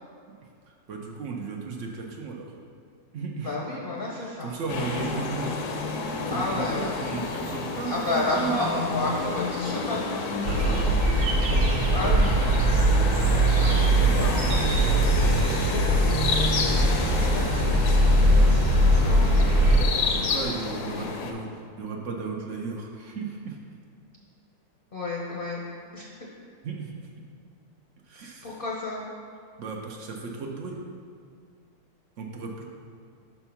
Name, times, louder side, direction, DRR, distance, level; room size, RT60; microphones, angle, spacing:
voice 1, 0.7-2.5 3.1-3.6 4.0-5.6 6.1-8.5 9.0-9.1 9.7-9.9 10.4-11.2 12.8-13.2 20.1-21.5 21.8-23.6 26.6-27.0 28.1-28.6 29.6-30.8 32.2-32.6, right 5 dB, 60° right, 0 dB, 0.9 m, -35 dB
voice 2, 3.4-4.5 6.3-7.0 7.9-10.3 11.9-12.6 13.3-16.4 17.0-19.5 20.0-20.4 20.9-21.1 24.9-25.6 25.9-26.1 28.2-29.0, left 2 dB, 50° left, -3 dB, 0.7 m, -32 dB
sound 1, 4.7-21.3, left 4 dB, 80° left, 1.2 m, -31 dB
sound 2, 10.4-19.9, right 1 dB, 85° right, 1.4 m, -21 dB
5.8 x 4.4 x 5.7 m, 2.2 s
omnidirectional pair, 1.6 m